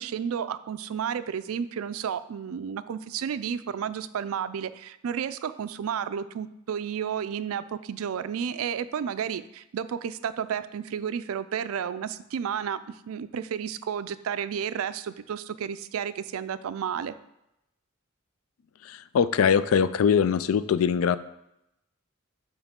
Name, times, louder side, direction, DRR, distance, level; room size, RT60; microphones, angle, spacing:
voice 1, 0.0-17.1, right 8 dB, 85° right, 14 dB, 0.4 m, -32 dB
voice 2, 18.8-21.2, left 7 dB, 80° left, 15 dB, 0.3 m, -22 dB
7.2 x 4.7 x 3.6 m, 0.85 s
head